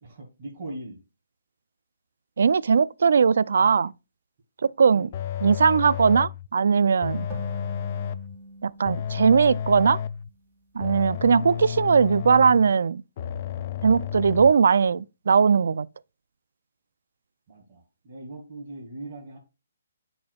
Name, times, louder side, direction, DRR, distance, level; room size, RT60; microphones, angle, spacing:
voice 1, 0.0-1.0 4.9-5.1 17.5-19.4, right 2 dB, 30° right, 2.0 m, -40 dB
voice 2, 2.4-3.9 4.6-5.1 5.4-7.3 8.6-10.0 10.7-13.0 13.8-15.9, right 6 dB, 70° right, 0.3 m, -20 dB
sound 1, 5.1-6.5 7.0-8.4 8.8-10.3 10.8-12.7 13.2-14.5, left 9 dB, 35° left, 0.3 m, -32 dB
sound 2, 7.3-10.8, right 1 dB, 15° right, 2.4 m, -44 dB
10.5 x 4.3 x 2.3 m
hypercardioid pair, 165°, 0 cm